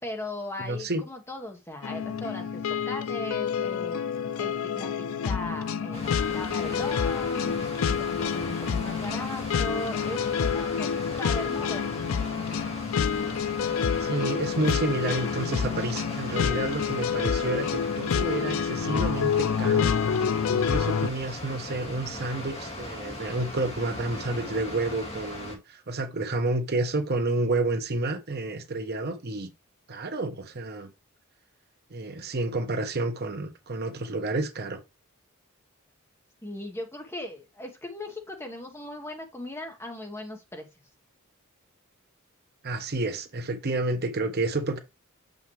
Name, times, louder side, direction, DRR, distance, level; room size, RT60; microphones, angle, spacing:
voice 1, 0.0-4.0 4.4-11.9 36.4-40.7, left 1 dB, 10° left, 1.2 m, -38 dB
voice 2, 0.6-1.0 14.0-19.9 20.5-29.5 29.9-30.9 31.9-34.8 42.6-44.8, right 2 dB, 50° right, 0.9 m, -30 dB
sound 1, 1.8-21.1, left 7 dB, 70° left, 0.4 m, -28 dB
Water, 5.9-25.6, left 1 dB, 30° left, 2.2 m, -39 dB
6.9 x 5.4 x 3.2 m
head